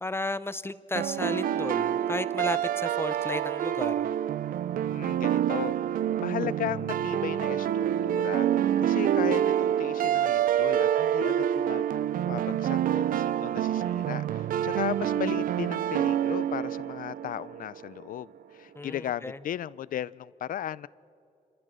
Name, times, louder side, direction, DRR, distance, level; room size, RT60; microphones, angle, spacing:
voice 1, 0.0-4.1 18.8-19.4, left 2 dB, 15° left, 0.5 m, -34 dB
sound 1, 1.0-17.8, right 10 dB, 75° right, 0.4 m, -27 dB
voice 2, 4.8-5.8 6.2-11.8 12.2-20.9, left 11 dB, 70° left, 0.4 m, -36 dB
29.5 x 15.0 x 6.3 m
cardioid pair, 115°, 14 cm